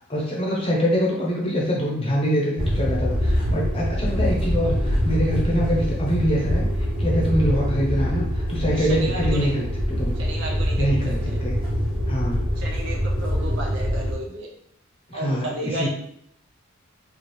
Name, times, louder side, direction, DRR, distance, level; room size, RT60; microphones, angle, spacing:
voice 1, 0.1-6.7 7.0-10.1 10.8-11.5 12.1-12.5 15.1-15.9, equal, 25° left, -3 dB, 0.8 m, -24 dB
sound 1, 2.6-14.1, equal, 25° right, 1.5 m, -24 dB
voice 2, 8.7-9.5 10.2-11.4 12.6-14.5 15.1-15.9, right 1 dB, 60° right, 0 dB, 0.6 m, -33 dB
3.3 x 2.4 x 4.3 m, 0.70 s
head